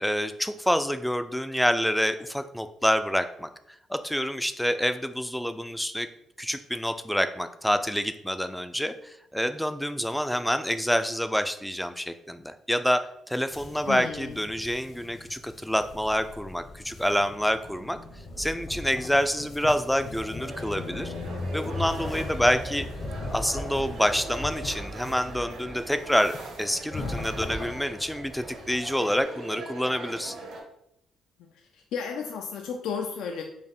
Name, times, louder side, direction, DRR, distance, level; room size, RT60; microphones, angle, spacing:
voice 1, 0.0-3.5 3.9-6.1 6.4-13.0 13.3-18.0 18.4-21.1 21.5-22.9 23.3-30.4, equal, 5° left, 10 dB, 0.3 m, -27 dB
sound 1, 13.5-29.2, left 2 dB, 50° left, 0.7 m, -38 dB
voice 2, 13.9-14.4 31.4-33.4, left 6 dB, 85° left, 3 dB, 0.4 m, -34 dB
sound 2, 20.4-30.6, right 2 dB, 80° right, 1.2 m, -41 dB
4.3 x 2.5 x 3.5 m, 0.76 s
cardioid pair, 90°, 0 cm